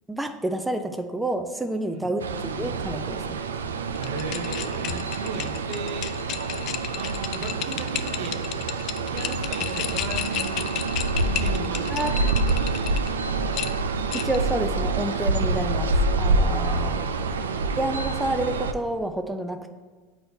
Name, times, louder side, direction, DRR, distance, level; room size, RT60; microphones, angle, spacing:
voice 1, 0.1-3.4 11.9-12.1 14.1-17.0 17.8-19.7, right 1 dB, 10° right, 6 dB, 0.5 m, -29 dB
sound 1, 2.2-18.7, right 3 dB, 90° right, 0.3 m, -27 dB
sound 2, 4.0-13.1 13.5-14.5, left 11 dB, 55° left, 0.3 m, -33 dB
voice 2, 4.0-6.2 7.0-8.4 9.0-10.7 11.2-12.9 16.8-17.6, right 4 dB, 70° right, 6 dB, 0.7 m, -37 dB
8.6 x 4.3 x 2.8 m, 1.3 s
hypercardioid pair, 85°, 0 cm